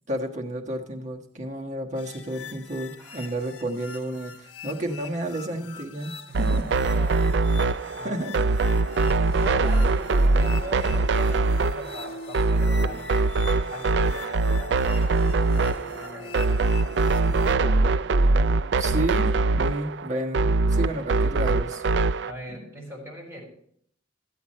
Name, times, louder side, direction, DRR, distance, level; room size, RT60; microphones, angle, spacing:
voice 1, 0.1-6.7 8.0-8.4 18.8-19.3 19.5-21.8, right 1 dB, 40° right, 1 dB, 1.5 m, -31 dB
sound 1, 2.0-17.6, left 4 dB, 70° left, 0.9 m, -41 dB
voice 2, 3.0-3.3 6.3-8.2 8.6-13.1 13.7-17.0 17.2-17.8 20.9-21.2 22.2-23.4, equal, 15° right, -3 dB, 4.9 m, -42 dB
sound 2, 6.3-22.3, right 3 dB, 65° right, 0.4 m, -22 dB
13.5 x 8.3 x 4.3 m, 0.63 s
head